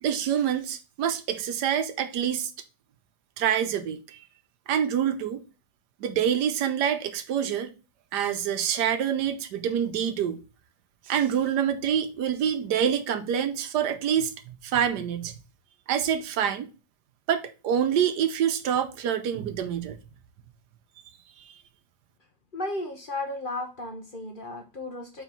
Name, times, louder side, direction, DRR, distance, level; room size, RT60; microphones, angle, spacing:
voice 1, 0.0-2.5 3.4-4.2 4.7-5.4 6.0-7.7 8.1-10.4 11.1-15.4 15.9-16.7 17.3-20.0, right 9 dB, 80° right, 1.4 m, -26 dB
voice 2, 22.5-25.2, left 2 dB, 40° left, 1.0 m, -34 dB
4.6 x 4.4 x 5.3 m
omnidirectional pair, 1.8 m